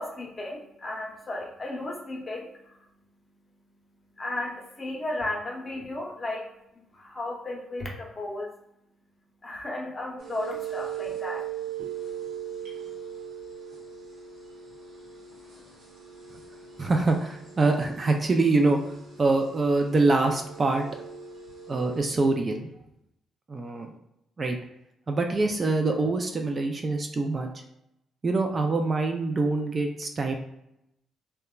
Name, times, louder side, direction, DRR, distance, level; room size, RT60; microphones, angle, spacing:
voice 1, 0.0-2.9 4.2-6.5 6.9-8.5 9.4-11.4, left 2 dB, 30° left, -1 dB, 0.7 m, -34 dB
sound 1, 10.2-22.0, right 9 dB, 85° right, 0.9 m, -40 dB
voice 2, 16.8-18.8 19.2-20.8 21.7-22.7 23.5-24.0 24.4-24.6 25.1-27.5 28.2-30.3, right 3 dB, 35° right, 3 dB, 0.3 m, -24 dB
2.9 x 2.1 x 2.3 m, 0.83 s
cardioid pair, 90°, 0 cm